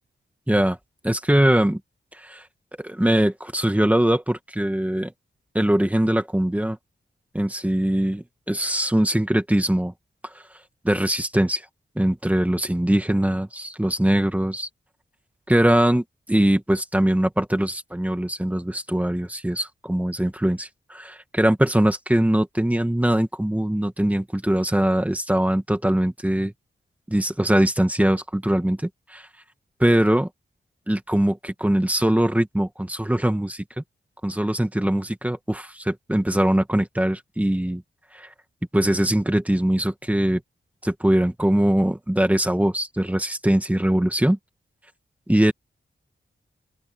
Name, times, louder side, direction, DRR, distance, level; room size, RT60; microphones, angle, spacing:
voice 1, 0.5-0.8 1.0-1.8 2.1-2.4 2.8-5.1 5.5-6.8 7.3-9.9 10.2-10.4 10.8-11.7 12.0-14.7 15.5-26.5 27.1-29.3 29.8-30.3 30.9-33.8 34.2-37.8 38.1-38.3 38.7-40.4 40.8-44.4 45.3-45.5, right 1 dB, 5° right, 1.9 m, -22 dB
open air
wide cardioid pair, 155°, 20 cm